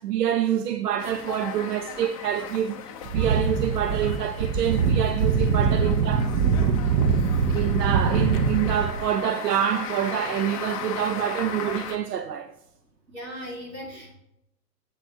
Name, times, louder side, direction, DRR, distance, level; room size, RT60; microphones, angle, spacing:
voice 1, 0.0-6.8 7.5-12.5, right 10 dB, 70° right, 0.6 m, -27 dB
sound 1, 1.0-12.0, left 8 dB, 25° left, 0.5 m, -38 dB
sound 2, 3.1-9.1, right 5 dB, 30° right, 0.7 m, -23 dB
voice 2, 7.1-7.4 13.1-14.1, equal, 90° right, 3.4 m, -39 dB
10.0 x 7.8 x 2.7 m
figure-of-eight pair, 115°, 50 cm